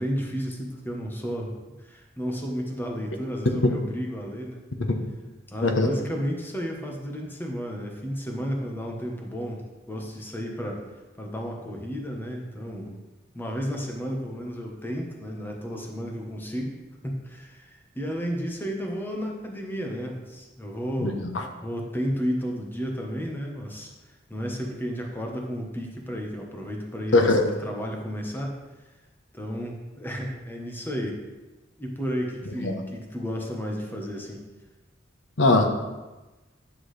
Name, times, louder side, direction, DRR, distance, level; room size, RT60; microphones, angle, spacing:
voice 1, 0.0-4.6 5.5-10.8 11.2-13.0 13.3-16.8 17.0-21.2 21.6-28.6 29.3-31.2 31.8-34.4, equal, 10° left, 0 dB, 1.1 m, -32 dB
voice 2, 21.0-21.4 27.1-27.4 32.6-32.7 35.4-35.7, left 2 dB, 80° left, 4 dB, 1.0 m, -20 dB
9.8 x 6.1 x 3.3 m, 1.1 s
head